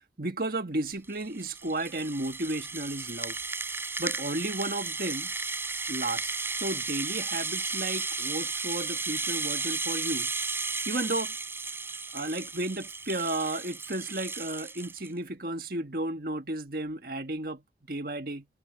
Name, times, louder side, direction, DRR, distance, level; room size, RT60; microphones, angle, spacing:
voice 1, 0.2-3.4 4.0-5.3 5.9-10.3 10.8-11.3 12.1-18.5, right 2 dB, 55° right, 1.6 m, -33 dB
Rattle (instrument), 0.9-15.1, right 4 dB, 15° right, 5.2 m, -34 dB
head